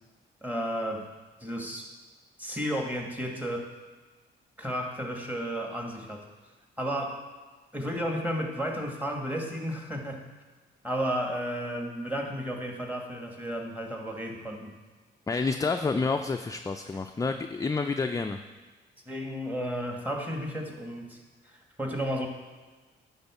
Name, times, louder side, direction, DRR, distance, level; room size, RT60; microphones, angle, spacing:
voice 1, 0.4-1.1 1.4-1.9 2.4-3.7 4.6-6.2 6.8-7.2 7.7-10.2 10.8-14.7 19.1-21.2 21.4-22.3, equal, 10° right, 1 dB, 1.7 m, -33 dB
voice 2, 15.3-18.4, left 4 dB, 15° left, 6 dB, 0.4 m, -29 dB
9.7 x 3.7 x 7.0 m, 1.4 s
cardioid pair, 80°, 20 cm